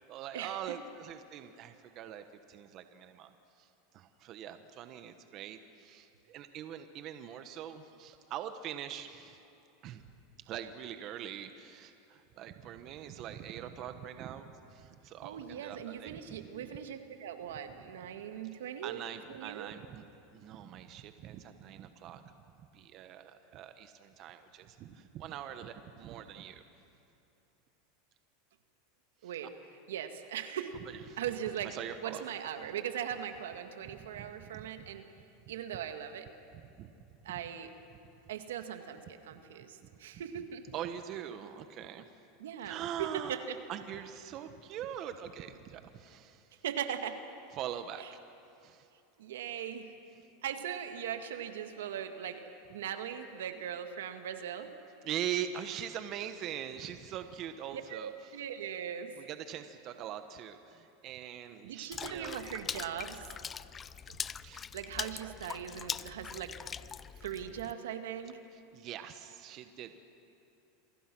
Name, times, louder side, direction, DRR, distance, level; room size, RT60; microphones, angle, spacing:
voice 1, 0.1-3.7 3.9-9.4 9.8-10.0 10.4-16.5 18.8-20.0 20.3-22.3 22.7-26.6 29.2-29.3 30.8-31.2 31.6-32.2 33.8-34.9 36.5-36.9 37.9-38.0 39.8-39.9 40.7-42.1 42.6-46.5 47.5-48.1 48.6-48.9 55.0-58.1 59.2-62.4 64.4-64.7 65.2-65.3 66.0-66.1 68.5-70.0, right 10 dB, 45° right, 9 dB, 1.2 m, -43 dB
voice 2, 15.2-19.0 19.3-19.7 29.2-29.5 29.9-30.7 31.2-31.7 32.0-35.0 35.5-36.3 37.2-37.7 38.3-40.6 42.4-43.6 46.6-47.2 48.0-48.1 49.2-49.9 50.4-52.4 52.7-54.7 57.7-59.1 61.6-63.3 64.1-64.2 64.7-66.5 67.2-68.4, right 9 dB, 90° right, 7 dB, 1.9 m, -39 dB
Water / Splash splatter, 61.9-67.7, left 7 dB, 25° left, 0.5 m, -42 dB
28.0 x 24.5 x 6.2 m, 2.9 s
supercardioid pair, 130°, 0 cm